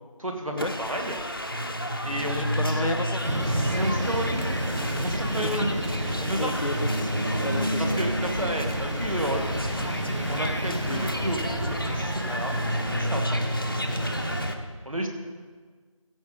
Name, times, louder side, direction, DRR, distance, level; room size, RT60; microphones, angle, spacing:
voice 1, 0.2-1.2 2.0-3.0 3.7-4.5 5.0-5.8 6.2-6.5 7.8-9.5 10.3-12.6 12.9-13.8 14.8-15.1, right 1 dB, 75° right, 2 dB, 2.4 m, -31 dB
sound 1, 0.6-14.5, equal, 40° left, 0.9 m, -35 dB
sound 2, 1.5-5.0 6.7-9.8 11.9-14.1, equal, 35° right, 1.0 m, -31 dB
voice 2, 2.4-3.2 5.5-5.8 6.3-7.9 10.9-11.0, left 1 dB, 70° left, 10 dB, 0.9 m, -33 dB
sound 3, 3.2-14.5, right 1 dB, 60° right, 1.4 m, -30 dB
15.0 x 7.0 x 5.4 m, 1.5 s
figure-of-eight pair, 175°, 17 cm